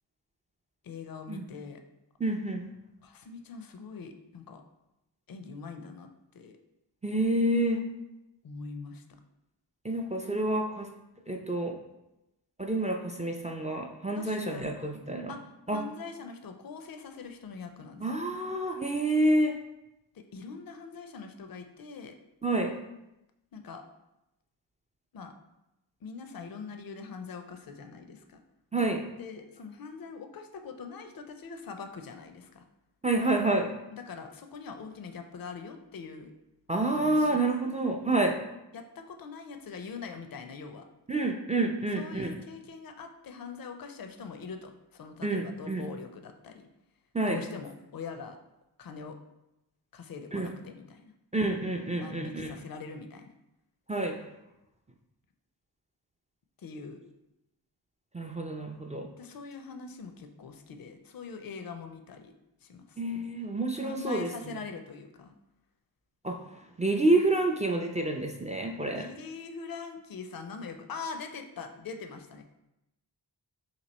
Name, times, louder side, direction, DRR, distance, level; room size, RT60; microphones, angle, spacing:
voice 1, 0.8-1.8 3.0-4.6 5.3-6.1 6.3-6.5 8.4-9.0 14.1-14.6 15.3-15.4 15.7-18.1 20.1-22.1 23.5-23.8 25.1-25.3 26.0-28.4 29.2-32.6 33.9-36.3 36.9-37.4 38.7-40.9 42.0-46.7 47.3-48.4 48.8-49.2 49.9-51.1 52.0-53.3 56.6-57.0 59.2-62.3 62.6-63.0 63.8-65.4 68.9-72.4, left 5 dB, 55° left, 6 dB, 0.5 m, -43 dB
voice 2, 2.2-2.6 7.0-7.8 9.8-10.9 11.3-11.8 12.6-15.4 15.7-15.8 18.0-19.5 22.4-22.7 28.7-29.0 33.0-33.7 36.7-38.4 41.1-42.3 45.2-45.9 47.1-47.4 50.3-50.5 51.3-52.5 53.9-54.2 58.1-59.1 63.0-64.6 66.2-66.4 66.8-69.1, right 2 dB, 20° right, 2 dB, 0.3 m, -28 dB
2.9 x 2.7 x 4.0 m, 0.91 s
wide cardioid pair, 40°, 44 cm